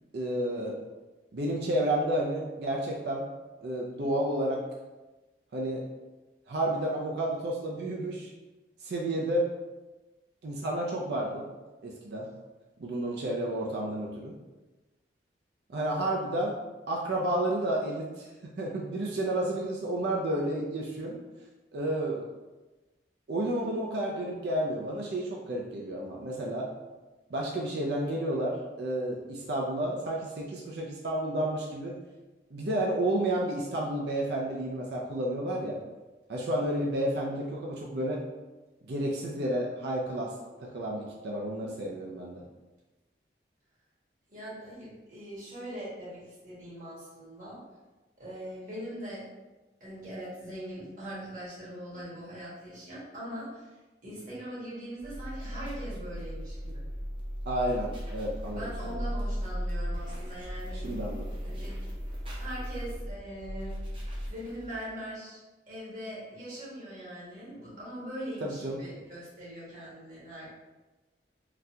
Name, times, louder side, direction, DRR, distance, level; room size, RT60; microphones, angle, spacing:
voice 1, 0.1-0.8 1.3-3.2 3.6-4.6 5.5-5.8 6.5-8.3 8.8-9.5 10.4-11.4 11.8-12.3 12.8-14.4 15.7-16.5 16.9-18.3 18.6-21.2 21.7-22.2 23.3-26.7 27.3-31.9 32.5-35.8 36.3-38.2 38.8-40.3 40.6-42.4 57.5-58.7 60.8-61.3 68.4-68.8, right 1 dB, 65° right, -2 dB, 0.4 m, -31 dB
voice 2, 44.3-47.6 48.2-49.2 49.8-53.7 54.0-56.8 58.5-60.9 61.4-61.7 62.3-63.8 64.2-65.4 65.7-70.5, equal, 50° right, -8 dB, 1.5 m, -41 dB
sound 1, 55.0-64.9, equal, 30° right, 0.6 m, -36 dB
3.9 x 2.3 x 2.7 m, 1.1 s
head